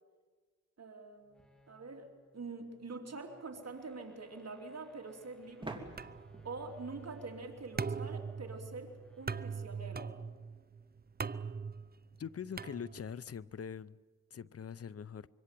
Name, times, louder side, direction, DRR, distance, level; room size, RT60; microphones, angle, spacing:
voice 1, 0.8-5.9 6.4-10.1, right 3 dB, 55° right, 3 dB, 3.1 m, -45 dB
sound 1, 1.2-9.7, right 1 dB, 5° left, 2.9 m, -65 dB
sound 2, 2.6-2.7 5.6-8.3, right 2 dB, 15° right, 3.0 m, -49 dB
sound 3, 6.0-13.3, right 5 dB, 30° right, 0.7 m, -42 dB
voice 2, 12.2-14.0 14.3-15.3, left 7 dB, 50° left, 19 dB, 0.7 m, -43 dB
25.5 x 24.0 x 7.7 m, 1.4 s
cardioid pair, 70°, 30 cm